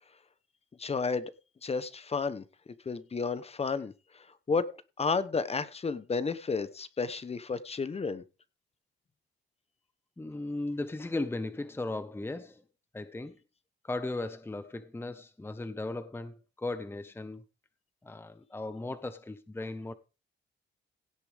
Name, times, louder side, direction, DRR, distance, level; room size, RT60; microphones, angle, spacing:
voice 1, 0.8-1.3 1.6-2.4 2.8-4.7 5.0-8.2, left 4 dB, 30° left, 1.1 m, -32 dB
voice 2, 10.2-12.6 12.9-13.4 13.8-17.4 18.0-19.9, left 2 dB, 10° left, 0.9 m, -37 dB
17.0 x 8.3 x 3.6 m
cardioid pair, 90°, 20 cm